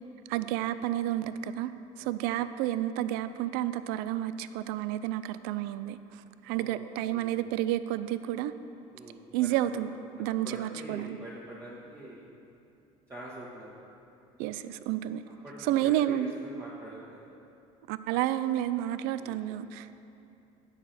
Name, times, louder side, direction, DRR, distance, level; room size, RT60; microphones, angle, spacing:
voice 1, 0.3-1.7 2.0-8.5 9.3-9.9 10.2-11.2 14.4-15.2 15.6-16.3 17.9-19.9, right 13 dB, 80° right, 13 dB, 0.4 m, -30 dB
voice 2, 2.0-2.3 6.5-6.8 7.1-7.4 8.9-9.5 10.1-12.3 13.1-13.7 15.4-17.3 19.2-19.4, right 1 dB, 15° right, -8 dB, 1.5 m, -45 dB
9.7 x 4.8 x 7.5 m, 2.7 s
supercardioid pair, 110°, 16 cm